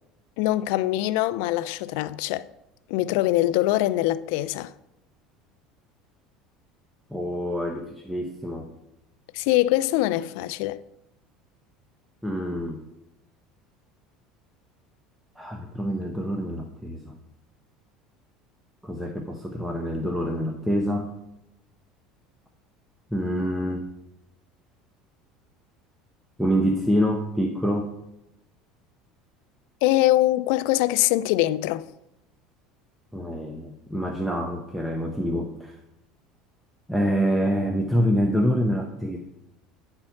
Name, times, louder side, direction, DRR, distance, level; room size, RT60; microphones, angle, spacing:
voice 1, 0.4-2.4 2.9-4.7 9.3-10.8 29.8-31.9, left 16 dB, 75° left, 0.3 m, -23 dB
voice 2, 7.1-8.7 12.2-12.8 15.4-17.2 18.8-21.1 23.1-23.9 26.4-27.9 33.1-35.8 36.9-39.2, equal, ahead, 0.8 m, -26 dB
9.6 x 4.4 x 5.7 m
supercardioid pair, 120°, 0 cm